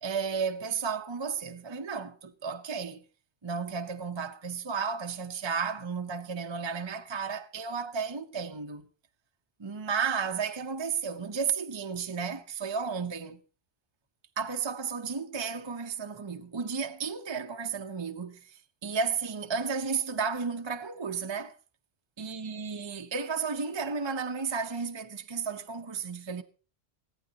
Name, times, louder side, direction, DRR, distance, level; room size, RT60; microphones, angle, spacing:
voice 1, 0.0-3.0 3.4-8.9 9.6-13.4 14.4-21.5 22.2-26.4, right 5 dB, 30° right, 0.7 m, -33 dB
20.5 x 15.0 x 2.8 m
omnidirectional pair, 1.2 m